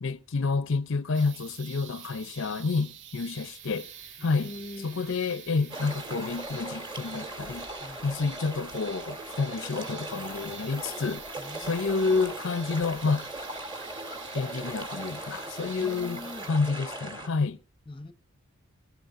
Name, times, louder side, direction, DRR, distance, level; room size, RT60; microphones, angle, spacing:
voice 1, 0.0-3.9 4.2-4.5 4.8-7.7 8.0-11.3 11.6-13.3 14.3-17.6, left 4 dB, 60° left, 0.6 m, -29 dB
sound 1, 1.1-16.5, right 9 dB, 55° right, 1.0 m, -48 dB
Train, 3.1-16.6, right 2 dB, 90° right, 6.2 m, -58 dB
voice 2, 4.2-5.0 7.8-8.1 11.4-12.2 15.8-16.5 17.9-18.1, left 2 dB, 25° left, 0.8 m, -43 dB
sound 2, 5.7-17.3, right 2 dB, 20° right, 2.7 m, -39 dB
18.5 x 17.0 x 2.5 m
head